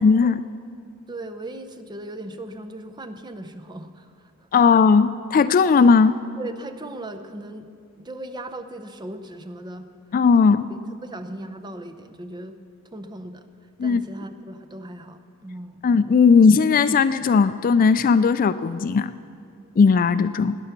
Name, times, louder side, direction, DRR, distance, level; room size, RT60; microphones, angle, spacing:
voice 1, 0.0-0.4 4.5-6.2 10.1-10.7 13.8-14.0 15.8-19.1 19.8-20.5, left 5 dB, 40° left, 13 dB, 0.3 m, -17 dB
voice 2, 1.1-4.7 6.4-7.7 8.0-9.9 10.4-12.6 12.9-13.5 13.8-15.8, right 1 dB, 20° right, 8 dB, 0.7 m, -38 dB
17.5 x 10.5 x 5.8 m, 2.4 s
head